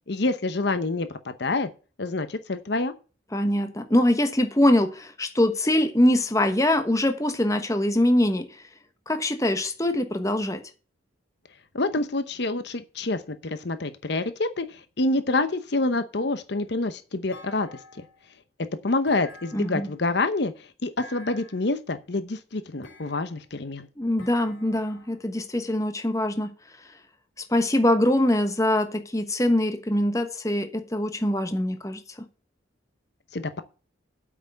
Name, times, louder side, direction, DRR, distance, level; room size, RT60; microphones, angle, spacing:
voice 1, 0.1-1.7 2.0-2.9 11.7-18.0 18.8-23.9 33.3-33.6, left 2 dB, 55° left, 0.8 m, -27 dB
voice 2, 3.3-8.5 9.1-10.6 19.5-19.9 24.0-26.5 27.5-32.0, left 1 dB, 15° left, 1.1 m, -23 dB
Thump thud, 17.3-18.2 19.1-20.0 21.0-21.7 22.8-23.5 24.2-25.2, left 2 dB, 75° left, 3.7 m, -48 dB
8.4 x 6.0 x 8.0 m
head